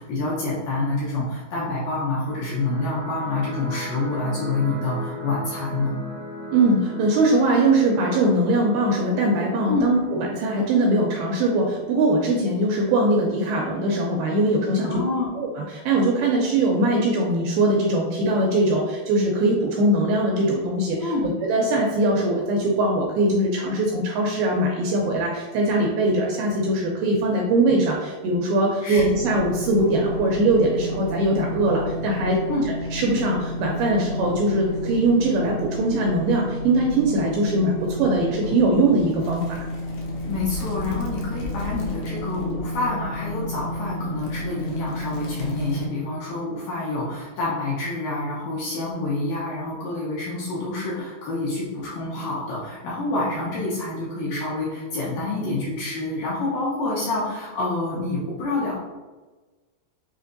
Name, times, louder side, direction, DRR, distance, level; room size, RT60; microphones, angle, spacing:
voice 1, 0.0-6.0 9.7-9.8 14.8-15.3 21.0-21.3 28.8-29.0 32.5-32.6 40.3-58.8, left 2 dB, 75° left, -7 dB, 2.2 m, -27 dB
sound 1, 2.0-13.0, equal, 55° left, 1.8 m, -38 dB
voice 2, 6.5-15.0 15.4-21.1 21.4-32.4 32.9-39.7, right 2 dB, 80° right, -1 dB, 2.2 m, -21 dB
sound 2, 28.9-45.9, left 1 dB, 90° left, 1.8 m, -31 dB
6.5 x 2.8 x 2.5 m, 1.2 s
omnidirectional pair, 4.8 m